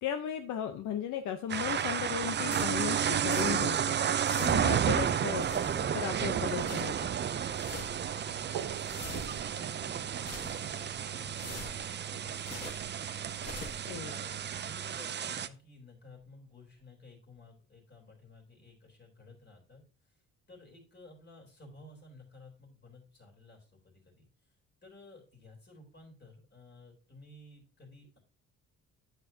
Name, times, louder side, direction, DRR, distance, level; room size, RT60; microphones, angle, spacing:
voice 1, 0.0-4.0 4.4-5.5 5.9-7.1 13.9-14.1, left 9 dB, 75° left, 7 dB, 0.8 m, -36 dB
sound 1, 1.5-15.5, right 8 dB, 35° right, 0.5 m, -32 dB
sound 2, 2.5-4.9 5.2-6.1 6.4-7.0 7.4-8.1 8.5-9.6 10.0-10.8 11.2-12.9 13.3-13.9, left 4 dB, 55° left, 2.2 m, -46 dB
voice 2, 7.9-8.9 9.2-20.2 20.5-24.2 24.8-28.2, left 2 dB, 35° left, 1 dB, 3.6 m, -54 dB
sound 3, 8.3-12.1 12.8-13.4 14.0-14.1 14.3-14.4 15.6-15.7 16.2-16.3 16.8-16.9 17.4-17.5, right 11 dB, 75° right, 0.7 m, -47 dB
9.1 x 7.5 x 2.8 m, 0.36 s
cardioid pair, 90°, 30 cm